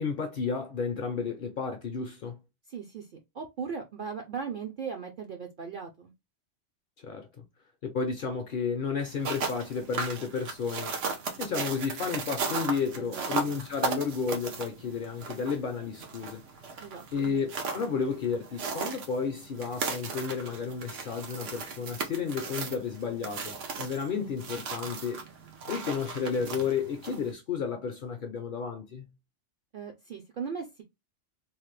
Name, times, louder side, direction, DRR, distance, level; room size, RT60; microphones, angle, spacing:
voice 1, 0.0-2.4 7.0-7.3 7.8-10.9 11.4-16.4 17.1-25.2 25.7-29.1, left 5 dB, 60° left, 0.6 m, -32 dB
voice 2, 2.7-6.1 13.0-13.3 16.8-17.3 29.7-30.8, right 6 dB, 60° right, 0.6 m, -38 dB
sound 1, 9.0-27.3, right 4 dB, 85° right, 1.1 m, -37 dB
3.1 x 2.1 x 3.1 m
omnidirectional pair, 1.2 m